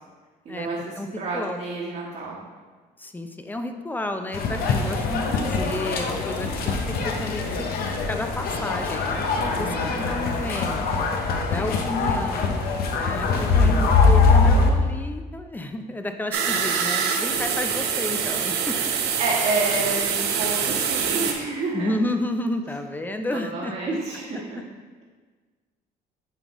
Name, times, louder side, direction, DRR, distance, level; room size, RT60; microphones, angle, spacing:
voice 1, 0.4-2.5 9.5-10.0 19.2-21.9 23.3-24.6, right 3 dB, 50° right, -6 dB, 1.3 m, -29 dB
voice 2, 3.0-7.5 8.1-9.2 9.6-10.9 11.4-12.7 12.9-18.8 21.7-24.0, left 1 dB, 10° left, 6 dB, 0.5 m, -31 dB
sound 1, 4.3-14.7, left 4 dB, 65° left, 0.8 m, -22 dB
sound 2, 16.3-21.3, right 7 dB, 75° right, 0.7 m, -25 dB
9.7 x 3.7 x 3.0 m, 1.4 s
cardioid pair, 110°, 17 cm